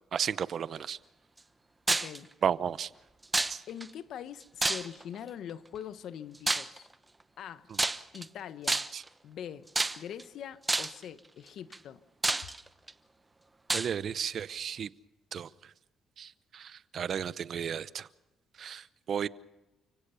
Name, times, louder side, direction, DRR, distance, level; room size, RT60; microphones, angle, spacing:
voice 1, 0.1-1.0 2.4-2.9 3.5-3.6 8.9-9.0 13.7-14.9 15.3-15.5 16.2-18.1 18.6-19.3, right 8 dB, 60° right, 17 dB, 0.7 m, -33 dB
voice 2, 1.9-2.3 3.7-6.9 7.4-7.7 8.1-8.8 9.2-9.7 10.0-12.0, left 9 dB, 75° left, 13 dB, 1.1 m, -43 dB
sound 1, 1.9-2.2 3.3-3.9 4.6-5.1 6.5-6.8 7.7-8.3 8.7-9.1 9.8-10.2 10.7-11.0 11.7-11.8 12.2-12.9 13.7-13.9, right 2 dB, 20° right, 0.9 m, -29 dB
30.0 x 17.0 x 7.0 m, 1.0 s
cardioid pair, 90°, 0 cm